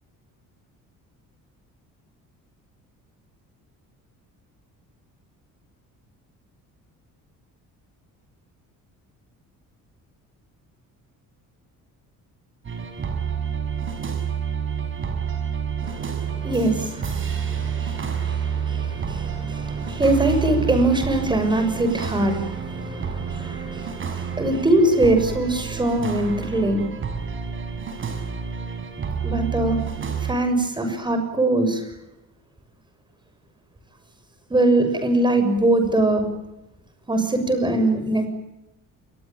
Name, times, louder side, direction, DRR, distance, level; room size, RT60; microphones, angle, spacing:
sound 1, 12.6-30.3, right 7 dB, 35° right, 6.6 m, -29 dB
voice 1, 15.8-26.9 29.2-29.8 30.2-31.8 34.5-36.3 37.1-38.3, right 2 dB, 15° right, 7 dB, 6.8 m, -22 dB
29.0 x 22.5 x 9.1 m, 0.93 s
cardioid pair, 150°, 34 cm